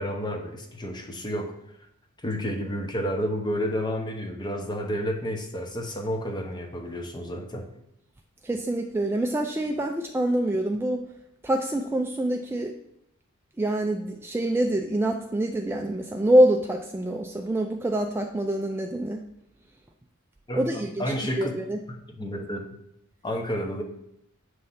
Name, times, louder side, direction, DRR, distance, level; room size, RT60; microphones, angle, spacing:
voice 1, 0.0-1.5 2.2-7.6 20.5-21.5 22.2-22.6 23.2-23.8, equal, 20° left, 4 dB, 0.8 m, -30 dB
voice 2, 8.4-11.1 11.4-12.7 13.6-19.2 20.5-21.0 21.4-21.8, right 1 dB, 10° right, 2 dB, 0.3 m, -25 dB
7.7 x 3.2 x 5.6 m, 0.80 s
head